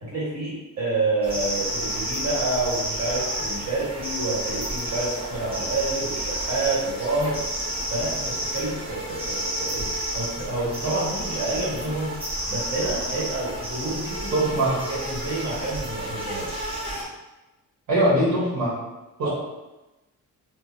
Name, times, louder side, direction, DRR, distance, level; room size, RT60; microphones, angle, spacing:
voice 1, 0.0-7.4 7.9-12.1 12.5-14.3 14.9-16.5 19.2-19.3, right 2 dB, 50° right, -6 dB, 1.5 m, -28 dB
sound 1, 1.2-17.0, right 1 dB, 15° right, 0.8 m, -31 dB
voice 2, 14.3-14.8 17.9-18.8 19.2-19.3, right 1 dB, 75° right, -9 dB, 1.0 m, -21 dB
3.6 x 2.0 x 2.7 m, 1.0 s
cardioid pair, 90°, 33 cm